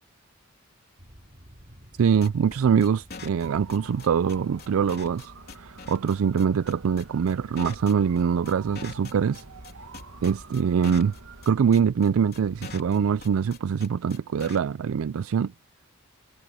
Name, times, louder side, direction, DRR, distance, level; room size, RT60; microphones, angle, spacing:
sound 1, 1.0-13.6, equal, 35° right, 7.9 m, -51 dB
voice 1, 2.0-9.4 10.2-11.1 11.5-15.5, right 7 dB, 70° right, 0.4 m, -24 dB
sound 2, 2.2-14.6, left 4 dB, 50° left, 3.3 m, -42 dB
sound 3, 3.4-11.5, right 4 dB, 90° right, 2.0 m, -46 dB
head